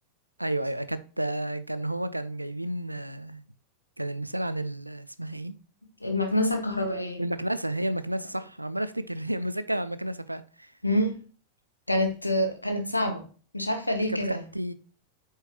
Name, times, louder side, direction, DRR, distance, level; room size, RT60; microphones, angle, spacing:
voice 1, 0.4-3.4 4.0-5.6 7.2-10.7 14.1-14.7, right 1 dB, 85° right, 0.5 m, -31 dB
voice 2, 6.0-7.2 10.8-11.2 11.9-13.2 13.5-14.4, left 1 dB, 85° left, 1.3 m, -26 dB
8.2 x 4.6 x 2.9 m
figure-of-eight pair, 90°, 0 cm